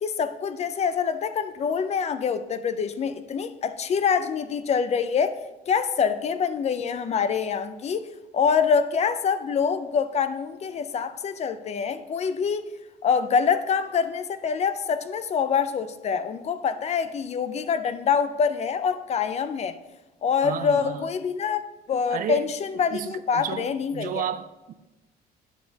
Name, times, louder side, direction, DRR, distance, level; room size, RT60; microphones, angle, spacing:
voice 1, 0.0-5.4 5.7-12.7 13.0-19.8 20.2-21.6 21.9-24.3, left 6 dB, 40° left, 0.5 m, -25 dB
voice 2, 20.4-21.1 22.1-24.7, right 9 dB, 55° right, 0.5 m, -33 dB
9.8 x 6.5 x 2.8 m
cardioid pair, 110°, 17 cm